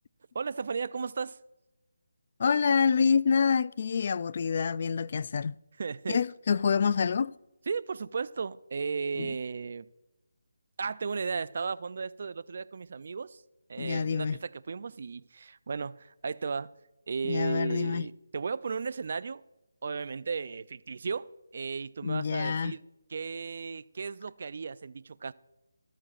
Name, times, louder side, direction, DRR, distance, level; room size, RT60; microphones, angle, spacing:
voice 1, 0.3-1.4 5.8-6.2 7.7-9.9 10.8-13.4 13.7-16.7 17.1-19.4 19.8-22.8 23.1-25.3, right 5 dB, 50° right, 0.4 m, -35 dB
voice 2, 2.4-5.5 6.1-7.3 9.2-9.3 13.8-14.4 17.2-18.1 22.0-22.7, left 6 dB, 45° left, 0.3 m, -27 dB
13.5 x 13.5 x 2.4 m
figure-of-eight pair, 160°, 0 cm